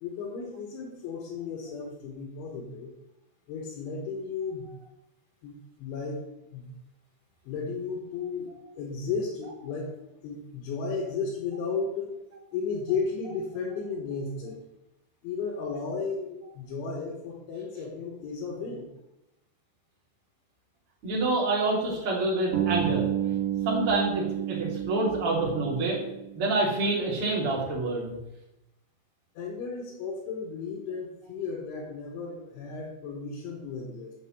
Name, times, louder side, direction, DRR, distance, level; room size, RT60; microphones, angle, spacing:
voice 1, 0.0-2.9 3.5-4.7 5.4-6.7 7.5-8.5 8.8-9.9 10.2-12.2 12.5-14.6 15.2-18.9 29.4-34.1, left 5 dB, 75° left, -2 dB, 3.7 m, -34 dB
voice 2, 21.0-23.1 23.6-26.0 26.3-28.1, right 2 dB, 35° right, -3 dB, 2.8 m, -27 dB
Bass guitar, 22.5-26.6, right 11 dB, 75° right, 4.1 m, -30 dB
7.8 x 6.6 x 7.9 m, 0.92 s
omnidirectional pair, 5.8 m